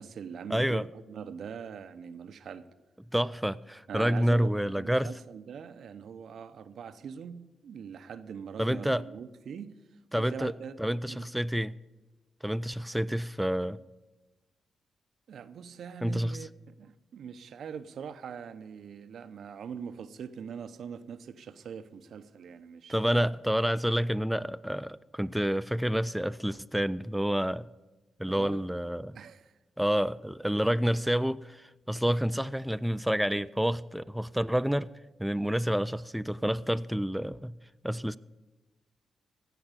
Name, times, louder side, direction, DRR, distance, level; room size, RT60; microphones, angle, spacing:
voice 1, 0.0-2.7 3.9-9.8 10.2-11.3 15.3-23.3 28.3-28.8 29.1-29.5, right 7 dB, 75° right, 0.7 m, -43 dB
voice 2, 0.5-0.9 3.1-5.1 8.6-9.0 10.1-10.5 10.8-11.8 12.4-13.8 16.0-16.4 22.9-27.7 28.2-29.2 29.8-34.9 35.2-37.5 37.8-38.2, equal, 5° right, 0.4 m, -28 dB
16.0 x 5.9 x 8.2 m
cardioid pair, 60°, 0 cm